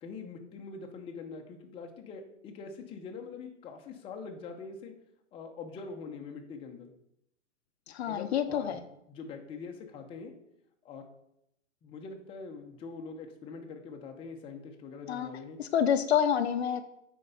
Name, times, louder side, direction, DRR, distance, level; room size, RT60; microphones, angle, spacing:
voice 1, 0.0-4.9 5.3-6.9 8.1-8.8 9.1-10.3 10.8-11.0 11.8-15.6, left 4 dB, 15° left, 2 dB, 0.8 m, -43 dB
voice 2, 7.9-8.8 15.1-15.3 15.6-16.8, left 8 dB, 60° left, 9 dB, 0.7 m, -28 dB
9.2 x 4.7 x 4.0 m, 0.78 s
hypercardioid pair, 135°, 37 cm